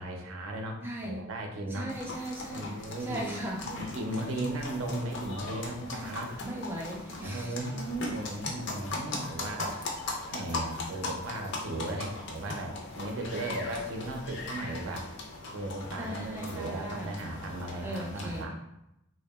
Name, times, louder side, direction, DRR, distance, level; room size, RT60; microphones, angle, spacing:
voice 1, 0.0-1.9 2.5-6.3 7.2-9.8 10.3-15.1 15.5-18.5, right 1 dB, 85° right, 3 dB, 0.5 m, -36 dB
voice 2, 0.8-1.3 1.7-3.7 5.9-7.6 16.0-17.2 17.8-18.6, right 1 dB, 10° right, -1 dB, 0.4 m, -38 dB
sound 1, 1.9-18.4, left 3 dB, 60° left, 0.4 m, -39 dB
2.7 x 2.2 x 2.2 m, 0.84 s
head